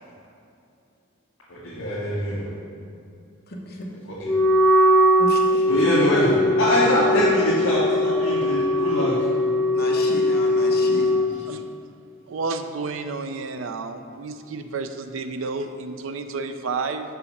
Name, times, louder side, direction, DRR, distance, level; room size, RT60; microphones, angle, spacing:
voice 1, 1.5-2.5 4.0-4.3 5.7-9.2 10.9-11.3, equal, 85° left, -9 dB, 1.8 m, -23 dB
Wind instrument woodwind instrument, 4.2-11.3, left 1 dB, 10° left, 0.5 m, -20 dB
voice 2, 5.2-5.7 9.7-11.1, left 1 dB, 50° left, -1 dB, 1.1 m, -32 dB
voice 3, 12.3-17.1, right 4 dB, 75° right, 8 dB, 0.5 m, -31 dB
5.7 x 4.9 x 6.4 m, 2.6 s
head